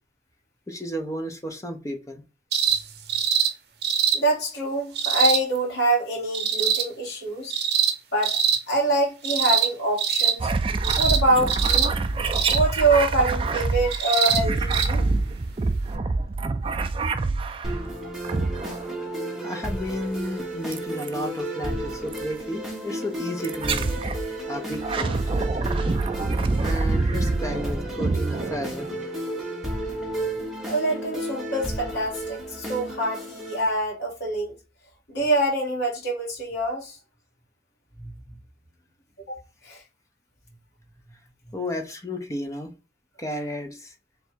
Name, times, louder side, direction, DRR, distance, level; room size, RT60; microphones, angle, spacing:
voice 1, 0.7-2.2 19.4-23.9 24.5-25.2 26.6-28.9 41.5-42.7 43.2-43.9, equal, 15° left, 0.6 m, -32 dB
sound 1, 2.5-2.8 3.1-3.5 3.8-4.2 5.0-5.4 6.3-6.8 7.5-7.9 8.2-8.6 9.2-9.7 10.0-10.3 10.8-11.2 11.5-11.9 12.3-12.6 13.9-14.4 14.7-14.9 15.9-16.0, right 8 dB, 60° right, 0.7 m, -23 dB
voice 2, 4.1-7.6 8.1-8.4 8.7-10.5 11.0-11.9 12.5-15.1 30.7-34.5 35.1-37.0 38.0-38.1 39.3-39.4 39.6-39.8, right 2 dB, 65° left, 1.9 m, -25 dB
sound 2, 10.4-17.8 18.2-19.0 20.7-21.1 22.1-22.3 23.4-24.2 24.7-29.0, right 3 dB, 30° right, 0.3 m, -26 dB
sound 3, 17.6-33.6, right 1 dB, ahead, 1.0 m, -33 dB
3.4 x 2.6 x 4.4 m
head